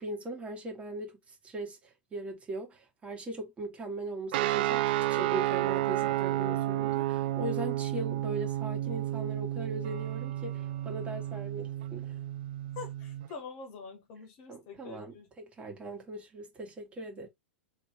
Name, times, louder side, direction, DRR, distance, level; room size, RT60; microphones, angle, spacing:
voice 1, 0.0-12.2 14.5-17.3, right 1 dB, 20° right, 1.8 m, -40 dB
sound 1, 4.3-13.3, right 14 dB, 55° right, 0.3 m, -31 dB
voice 2, 12.7-15.3, left 5 dB, 45° left, 1.6 m, -45 dB
3.5 x 3.3 x 3.5 m
figure-of-eight pair, 95°, 6 cm